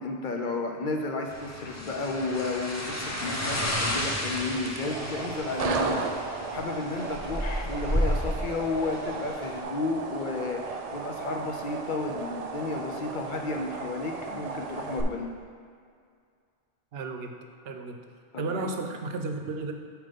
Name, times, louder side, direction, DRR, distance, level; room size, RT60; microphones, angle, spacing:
voice 1, 0.0-6.0 6.5-15.3 18.3-18.7, left 3 dB, 55° left, 3 dB, 0.7 m, -32 dB
sound 1, 1.3-9.6, equal, 20° left, 0.6 m, -32 dB
sound 2, 4.4-15.0, right 4 dB, 50° right, 0.5 m, -35 dB
voice 2, 16.9-17.4 17.6-18.0 18.4-19.7, right 3 dB, 75° right, 5 dB, 0.9 m, -33 dB
8.8 x 3.0 x 5.3 m, 2.2 s
omnidirectional pair, 1.0 m